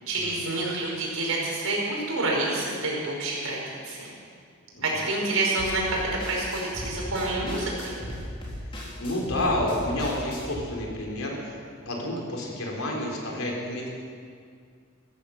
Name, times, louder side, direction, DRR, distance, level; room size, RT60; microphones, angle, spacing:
voice 1, 0.1-4.1 4.8-6.0 6.2-7.9, right 2 dB, 80° right, -3 dB, 5.2 m, -28 dB
sound 1, 5.6-10.6, equal, 25° left, 3.6 m, -37 dB
voice 2, 9.0-11.6 11.9-13.9, left 1 dB, 80° left, -1 dB, 3.9 m, -29 dB
15.5 x 14.5 x 6.5 m, 2.2 s
head